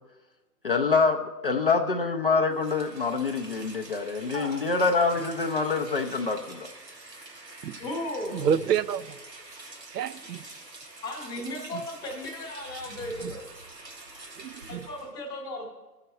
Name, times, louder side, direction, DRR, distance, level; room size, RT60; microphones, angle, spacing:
voice 1, 0.6-6.7, left 4 dB, 40° left, 3 dB, 0.4 m, -26 dB
Rain, 2.5-15.1, right 2 dB, 90° right, 2.0 m, -46 dB
voice 2, 4.3-4.6 7.8-8.6 11.0-13.5 14.7-15.7, left 1 dB, 10° left, -1 dB, 0.7 m, -36 dB
voice 3, 8.3-9.2 9.9-10.5 11.7-11.8 13.2-13.3 14.4-14.9, right 8 dB, 75° right, 16 dB, 0.6 m, -29 dB
14.0 x 5.8 x 4.1 m, 1.2 s
figure-of-eight pair, 130°, 49 cm